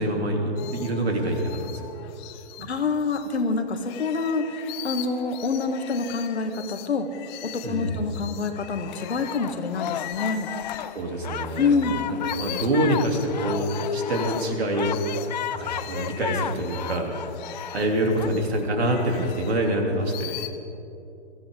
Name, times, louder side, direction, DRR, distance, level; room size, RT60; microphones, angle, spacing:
voice 1, 0.0-1.9 2.6-2.7 7.6-8.0 11.0-15.0 15.5-17.1 17.7-20.4, right 1 dB, 65° right, 1 dB, 3.3 m, -26 dB
sound 1, 0.6-3.4 3.7-11.9 12.2-20.5, left 12 dB, 25° left, 0.8 m, -41 dB
voice 2, 2.6-7.1 7.4-10.5 11.6-12.0, left 4 dB, 70° left, 6 dB, 1.7 m, -26 dB
sound 2, 8.9-18.3, left 10 dB, 40° left, 0.4 m, -34 dB
23.0 x 14.5 x 3.8 m, 2.8 s
figure-of-eight pair, 130°, 34 cm